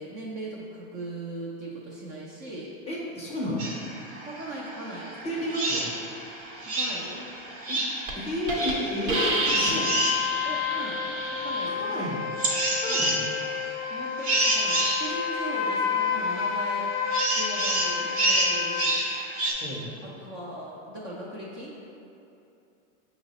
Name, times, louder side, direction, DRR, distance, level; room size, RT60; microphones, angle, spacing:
voice 1, 0.0-2.7 4.2-5.1 6.6-7.3 10.4-11.9 12.9-13.1 13.9-16.9 17.3-19.0 20.0-21.8, right 1 dB, 30° right, -5 dB, 0.4 m, -39 dB
voice 2, 2.9-3.7 5.2-5.9 7.7-7.8 8.1-9.9 11.7-12.2 12.6-13.2 19.6-19.9, equal, 15° left, -5 dB, 0.6 m, -32 dB
sound 1, 3.6-19.5, right 1 dB, 50° right, 1.0 m, -30 dB
Hiss, 7.5-7.7 8.1-8.2 8.5-8.7 9.1-11.7, right 2 dB, 75° right, 0.8 m, -30 dB
sound 2, 9.1-19.0, left 7 dB, 65° left, 0.5 m, -30 dB
5.5 x 2.0 x 4.0 m, 2.7 s
supercardioid pair, 140°, 40 cm